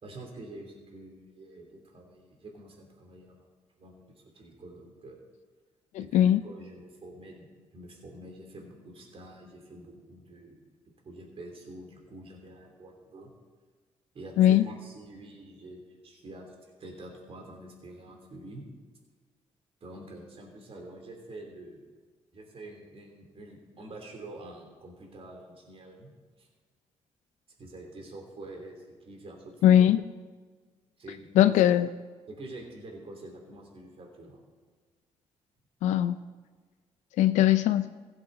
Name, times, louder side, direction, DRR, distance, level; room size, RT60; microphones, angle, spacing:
voice 1, 0.0-3.4 3.8-5.2 6.0-7.4 7.7-10.6 11.0-13.3 14.1-18.6 19.8-21.9 22.3-26.1 26.4-26.5 27.6-29.9 31.0-31.6 32.3-34.4, right 1 dB, 50° right, 0 dB, 2.9 m, -46 dB
voice 2, 5.9-6.4 14.4-14.6 29.6-30.0 31.4-31.9 35.8-36.2 37.2-37.9, left 11 dB, 85° left, 11 dB, 0.4 m, -20 dB
16.0 x 7.9 x 3.9 m, 1.4 s
supercardioid pair, 60°, 12 cm